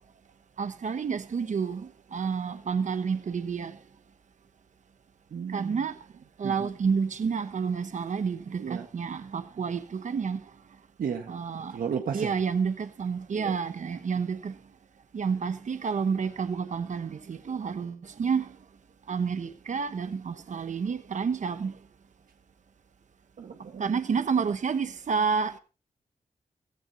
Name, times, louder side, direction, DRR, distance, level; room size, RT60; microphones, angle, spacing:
voice 1, 0.6-3.8 5.5-6.0 6.4-10.5 11.3-11.8 12.1-14.6 15.1-18.6 19.1-21.8 23.8-25.6, right 6 dB, 60° right, 1.1 m, -29 dB
voice 2, 5.3-5.8 6.4-6.7 8.6-8.9 11.0-11.3 11.7-12.4 13.3-13.6 23.4-24.0, right 7 dB, 85° right, 1.4 m, -34 dB
15.5 x 15.5 x 2.8 m
wide cardioid pair, 90°, 14 cm